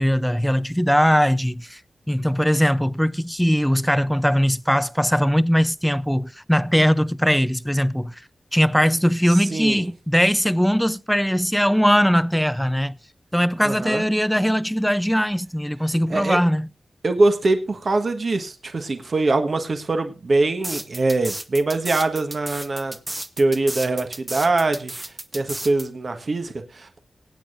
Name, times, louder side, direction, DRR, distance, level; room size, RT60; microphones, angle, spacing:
voice 1, 0.0-1.8 2.1-8.1 8.5-13.0 13.3-16.7, equal, ahead, 0.5 m, -20 dB
voice 2, 9.3-9.8 13.6-14.0 16.1-16.4 17.0-23.0 23.4-27.0, right 2 dB, 55° right, 1.4 m, -23 dB
sound 1, 20.6-25.9, right 1 dB, 25° right, 1.0 m, -32 dB
23.5 x 8.9 x 2.5 m
wide cardioid pair, 95°, 0 cm